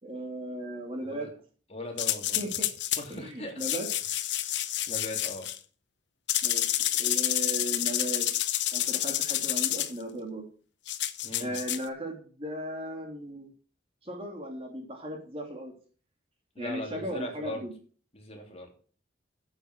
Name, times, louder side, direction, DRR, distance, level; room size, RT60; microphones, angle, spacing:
voice 1, 0.0-1.3 2.4-2.7 3.1-3.9 6.4-6.7 7.0-8.3 8.7-10.5 11.4-13.5 14.0-15.7 16.6-17.7, right 1 dB, 30° right, 2 dB, 2.8 m, -36 dB
voice 2, 1.7-2.4 2.9-3.6 4.9-5.5 11.2-11.6 16.5-17.6 18.1-18.7, left 1 dB, 35° left, 2 dB, 3.2 m, -39 dB
sound 1, 2.0-3.0 3.6-5.6 6.3-9.9 10.9-11.8, left 13 dB, 70° left, 0.9 m, -29 dB
9.7 x 7.9 x 6.4 m, 0.41 s
head